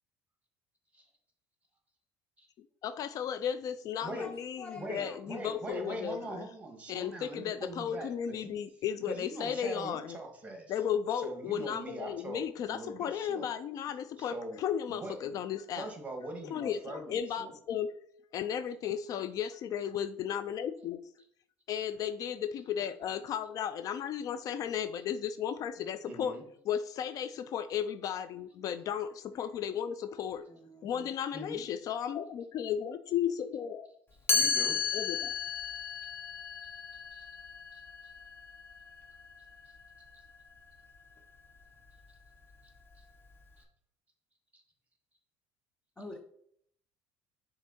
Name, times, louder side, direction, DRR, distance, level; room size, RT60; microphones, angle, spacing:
voice 1, 2.6-6.5 6.9-10.2 10.7-15.9 16.5-17.9 18.3-21.0 21.7-26.3 26.7-30.5 30.8-33.9 34.9-35.4, left 8 dB, 50° left, 12 dB, 0.4 m, -35 dB
voice 2, 4.0-5.2 30.5-31.1 46.0-46.2, left 3 dB, 10° left, 3 dB, 0.8 m, -47 dB
voice 3, 4.7-8.6 9.1-10.7 11.2-13.5 14.2-14.6 14.9-15.3 15.7-17.5 26.1-26.4 31.3-31.6 34.3-34.8 36.9-37.3 37.7-37.8 39.7-39.8 40.1-40.2 42.6-43.0 43.6-43.7 44.5-44.6, right 2 dB, 20° right, 4 dB, 1.8 m, -42 dB
Chime, 34.3-40.1, left 5 dB, 30° left, 1.1 m, -34 dB
6.1 x 3.8 x 4.3 m, 0.67 s
supercardioid pair, 90°, 8 cm